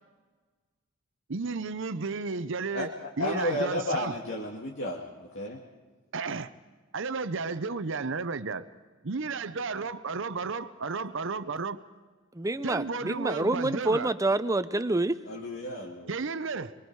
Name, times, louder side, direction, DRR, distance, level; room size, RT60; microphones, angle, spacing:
voice 1, 1.3-2.9 3.2-4.2 6.1-6.5 6.9-8.7 9.0-11.8 12.6-14.1 16.1-16.7, right 4 dB, 60° right, 0.8 m, -33 dB
voice 2, 2.7-5.6 15.2-16.1, left 1 dB, 60° left, 2.3 m, -33 dB
voice 3, 12.3-15.2, right 2 dB, 15° right, 0.7 m, -27 dB
25.5 x 23.5 x 4.8 m
head